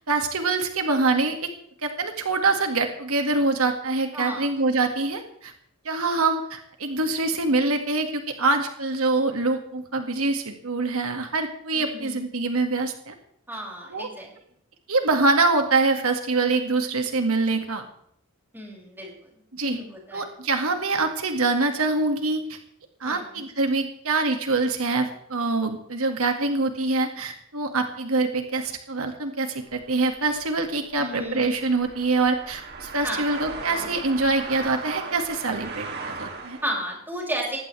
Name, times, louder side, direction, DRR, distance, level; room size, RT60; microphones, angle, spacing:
voice 1, 0.1-1.5 1.8-5.5 5.9-13.1 13.9-14.1 14.9-17.8 19.5-19.8 20.1-22.6 23.0-36.6, right 3 dB, 80° right, 5 dB, 2.1 m, -25 dB
voice 2, 4.1-4.5 11.7-12.2 13.5-14.3 18.5-19.1 19.6-20.2 23.0-23.5 31.0-31.5 33.0-33.3 36.6-37.6, equal, 10° right, -2 dB, 6.7 m, -33 dB
sound 1, 29.7-36.8, right 4 dB, 50° right, 2.7 m, -38 dB
20.0 x 16.0 x 3.4 m, 0.68 s
head